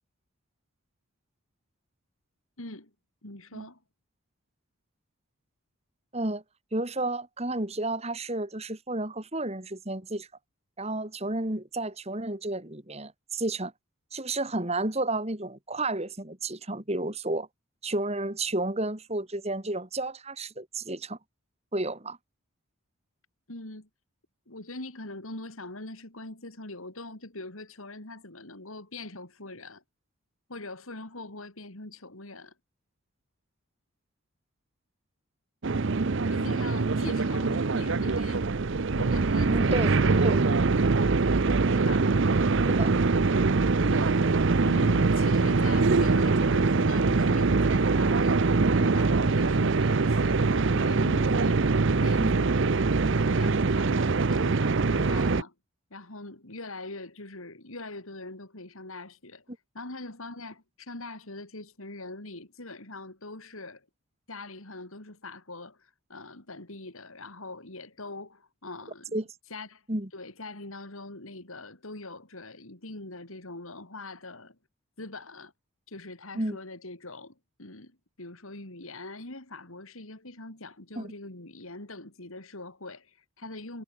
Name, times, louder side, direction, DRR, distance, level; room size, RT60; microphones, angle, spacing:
voice 1, 2.6-2.9 3.2-3.8 23.5-23.9 24.5-29.8 30.5-32.5 36.3-40.2 41.7-42.1 43.8-44.3 44.6-52.6 53.0-55.5 55.9-59.5 59.7-63.9 64.3-69.2 69.5-69.8 70.1-74.6 75.0-75.5 75.9-83.8, left 2 dB, 70° left, 3.5 m, -42 dB
voice 2, 6.7-10.3 10.8-13.7 14.1-17.5 17.8-21.2 21.7-22.2 39.5-39.9 40.2-40.6 42.7-42.9 52.2-52.3 69.1-69.2 69.9-70.1 76.3-76.6 81.0-81.1, right 2 dB, 30° right, 2.4 m, -31 dB
sound 1, 35.6-55.4, right 3 dB, 55° right, 0.6 m, -23 dB
head